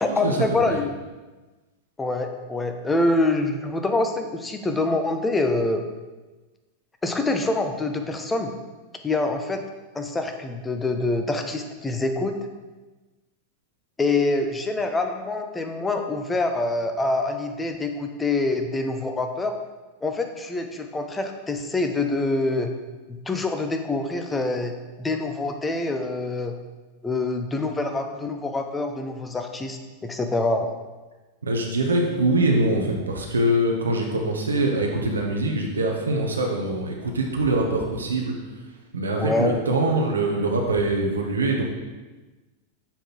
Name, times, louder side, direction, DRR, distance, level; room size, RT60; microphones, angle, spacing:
voice 1, 0.0-0.9 2.0-5.8 7.0-8.5 9.0-9.6 9.9-12.4 14.0-19.6 20.0-22.7 23.1-24.7 25.0-26.5 27.0-30.7 39.2-39.6, left 2 dB, 15° left, 5 dB, 0.6 m, -25 dB
voice 2, 31.4-38.4 38.9-41.6, right 1 dB, 75° right, 1 dB, 0.9 m, -23 dB
7.0 x 3.8 x 4.4 m, 1.2 s
figure-of-eight pair, 90°, 0 cm